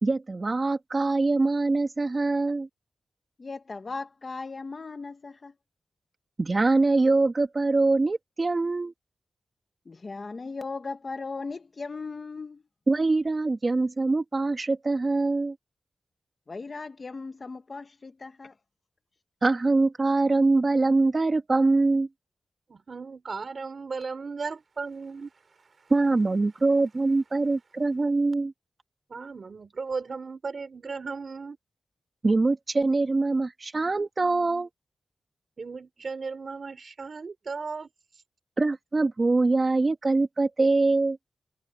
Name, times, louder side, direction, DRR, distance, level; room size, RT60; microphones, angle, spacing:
voice 1, 0.0-2.7 6.4-8.9 12.9-15.5 19.4-22.1 25.9-28.5 32.2-34.7 38.6-41.2, right 3 dB, 30° right, 2.7 m, -23 dB
voice 2, 3.4-5.5 9.8-12.6 16.5-18.5, left 4 dB, 35° left, 1.3 m, -37 dB
voice 3, 22.7-25.3 29.1-31.6 35.6-37.9, right 4 dB, 45° right, 3.9 m, -36 dB
wide cardioid pair, 140°, 0 cm